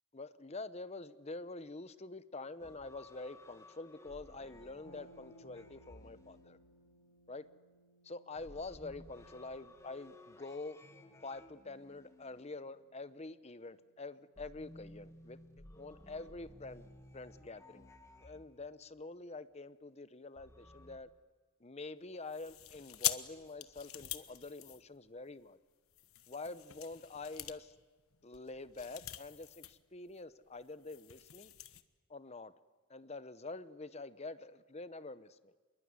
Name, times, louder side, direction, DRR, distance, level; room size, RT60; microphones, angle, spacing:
voice 1, 0.1-6.6 7.3-7.4 8.0-10.8 11.2-15.4 15.8-16.9 17.1-17.9 18.2-21.1 21.6-25.6 26.3-27.7 28.2-31.5 32.1-32.5 32.9-35.5, left 3 dB, 30° left, 14 dB, 0.8 m, -46 dB
sound 1, 2.6-7.2 8.4-13.1 14.4-19.0 20.4-21.0, left 1 dB, 15° left, 1.8 m, -57 dB
sound 2, 4.8-14.6, equal, 70° left, 3.7 m, -67 dB
sound 3, 22.3-25.3 25.9-29.8 30.1-30.2 30.6-31.8, left 13 dB, 85° left, 1.2 m, -43 dB
26.5 x 22.0 x 9.5 m, 1.4 s
head